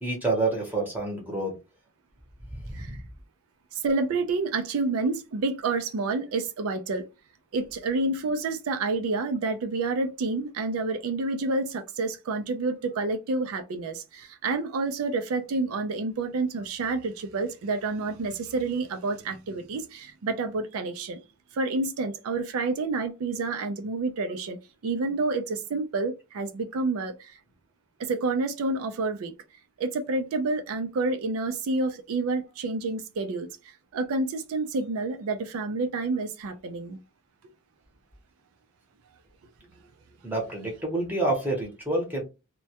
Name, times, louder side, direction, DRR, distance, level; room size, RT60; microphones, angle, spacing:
voice 1, 0.0-1.5 2.7-3.0 40.2-42.2, right 2 dB, 10° right, 0.8 m, -28 dB
voice 2, 3.7-7.0 7.5-21.2 21.5-24.6 24.8-27.3 28.0-29.3 29.8-33.5 33.9-37.0, right 3 dB, 90° right, 0.4 m, -29 dB
2.2 x 2.1 x 2.7 m
head